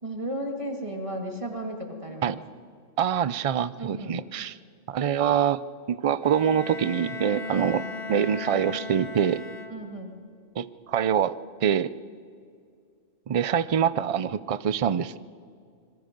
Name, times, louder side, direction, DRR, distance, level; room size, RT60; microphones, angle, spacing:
voice 1, 0.0-2.4 3.8-4.2 7.5-7.9 9.7-10.2, right 1 dB, 25° right, 2 dB, 2.1 m, -34 dB
voice 2, 3.0-4.5 4.9-5.6 5.9-7.8 8.1-9.4 10.6-11.9 13.3-15.2, right 8 dB, 45° right, 15 dB, 0.4 m, -25 dB
Bowed string instrument, 6.2-10.2, left 4 dB, 65° left, 1.5 m, -37 dB
25.5 x 22.5 x 5.3 m, 2.2 s
omnidirectional pair, 1.3 m